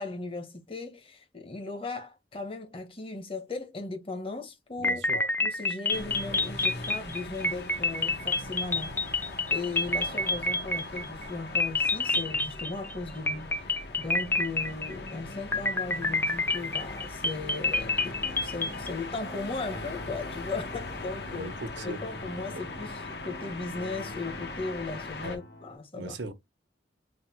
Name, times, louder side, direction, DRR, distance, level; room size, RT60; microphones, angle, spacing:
voice 1, 0.0-9.2 9.5-13.5 13.7-21.5 21.8-26.1, left 3 dB, 30° left, 0.9 m, -37 dB
sound 1, 4.8-11.3 11.6-12.9 13.3-15.1 15.5-18.9, left 3 dB, 10° left, 0.3 m, -28 dB
voice 2, 4.8-5.2 21.3-22.0 22.5-22.6 25.2-25.4 25.9-26.3, right 2 dB, 90° right, 0.9 m, -39 dB
sound 2, 5.9-25.4, left 2 dB, 65° left, 0.8 m, -41 dB
sound 3, 17.7-25.8, left 1 dB, 85° left, 1.8 m, -45 dB
3.7 x 2.1 x 4.3 m
head